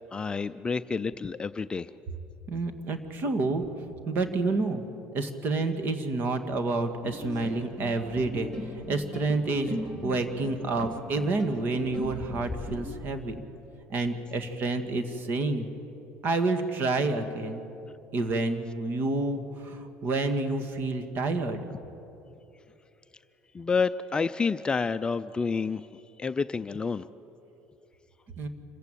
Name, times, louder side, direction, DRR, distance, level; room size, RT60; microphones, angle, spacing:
voice 1, 0.1-1.9 23.5-25.8 26.2-27.0, left 5 dB, 20° left, 11 dB, 0.4 m, -29 dB
voice 2, 2.5-3.6 4.1-4.8 5.1-13.4 13.9-15.7 16.2-17.6 18.1-21.6 28.4-28.5, right 3 dB, 45° right, 8 dB, 2.0 m, -29 dB
sound 1, 7.0-12.7, left 1 dB, 5° left, 4.8 m, -39 dB
26.5 x 15.5 x 9.1 m, 3.0 s
cardioid pair, 120°, 4 cm